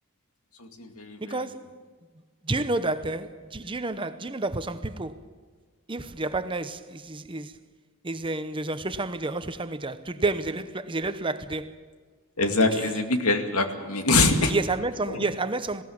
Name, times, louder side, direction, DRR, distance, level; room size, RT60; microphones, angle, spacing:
voice 1, 0.6-1.3 12.4-14.5 15.1-15.2, left 3 dB, 90° left, 2.3 m, -24 dB
voice 2, 1.2-1.7 2.4-5.3 5.9-7.6 8.0-11.8 12.7-12.8 14.5-15.8, right 2 dB, 25° right, 0.8 m, -30 dB
20.5 x 17.5 x 8.7 m
head